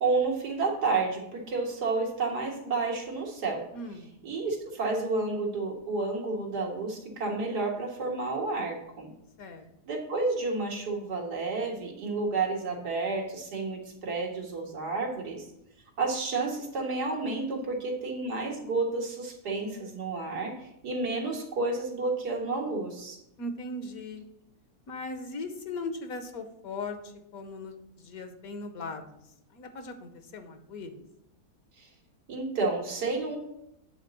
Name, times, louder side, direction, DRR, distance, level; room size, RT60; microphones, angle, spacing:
voice 1, 0.0-3.6 4.2-9.1 9.9-15.5 16.0-23.2 31.8-31.9 32.3-33.4, right 3 dB, 90° right, 0 dB, 2.2 m, -30 dB
voice 2, 3.7-4.1 9.4-9.6 23.4-24.2 24.9-29.0 29.5-30.9, left 2 dB, 65° left, 8 dB, 1.3 m, -38 dB
8.8 x 4.1 x 6.7 m, 0.82 s
omnidirectional pair, 1.7 m